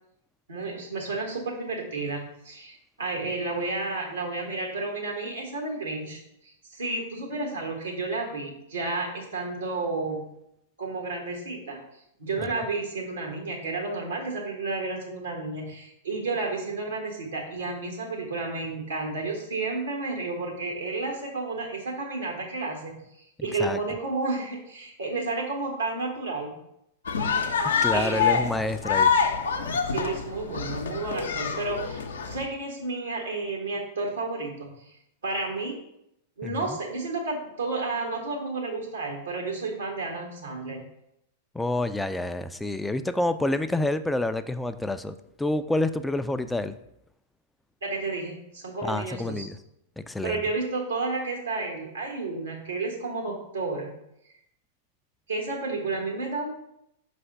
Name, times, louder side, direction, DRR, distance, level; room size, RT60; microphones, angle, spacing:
voice 1, 0.5-10.2 10.8-11.8 12.2-23.0 23.4-26.5 27.9-28.4 29.9-35.0 35.2-35.8 36.4-40.8 47.8-49.5 50.2-53.9 55.3-56.5, right 3 dB, 80° right, -1 dB, 1.1 m, -31 dB
sound 1, 27.1-32.4, left 6 dB, 70° left, 0.6 m, -26 dB
voice 2, 27.8-29.1 36.4-36.8 41.5-46.7 48.8-49.6 50.0-50.4, left 2 dB, 5° left, 10 dB, 0.3 m, -28 dB
5.5 x 3.4 x 5.4 m, 0.79 s
figure-of-eight pair, 95°, 0 cm